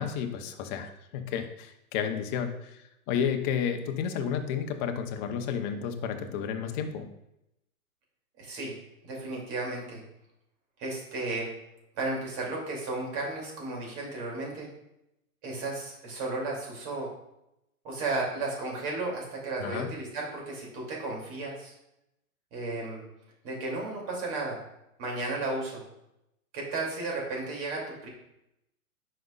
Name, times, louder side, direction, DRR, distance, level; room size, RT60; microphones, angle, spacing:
voice 1, 0.0-7.1 19.6-19.9, left 7 dB, 35° left, 6 dB, 0.7 m, -32 dB
voice 2, 8.4-8.7 9.0-10.0 10.8-11.5 12.0-14.7 15.4-17.1 17.8-21.7 22.5-23.0 23.4-24.6 25.0-25.8 26.5-28.1, right 2 dB, 40° right, -2 dB, 2.7 m, -34 dB
9.2 x 5.4 x 2.4 m, 0.84 s
hypercardioid pair, 125°, 43 cm